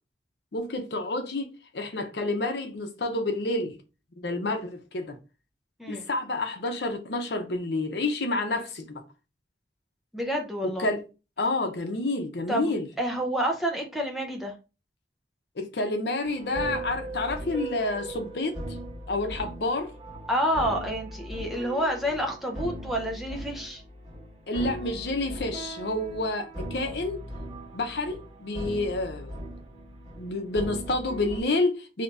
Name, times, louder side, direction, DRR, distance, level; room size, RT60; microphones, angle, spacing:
voice 1, 0.5-1.5 1.7-3.7 4.2-5.2 5.9-9.0 10.6-11.0 11.4-12.9 15.6-18.6 19.1-19.9 24.5-27.2 27.7-29.4 30.2-32.0, left 2 dB, 70° left, 0.7 m, -29 dB
voice 2, 10.1-10.9 12.5-12.7 13.0-14.5 20.3-23.8, equal, ahead, 0.6 m, -28 dB
sound 1, 16.3-31.4, right 1 dB, 20° right, 1.6 m, -38 dB
2.8 x 2.7 x 3.4 m
head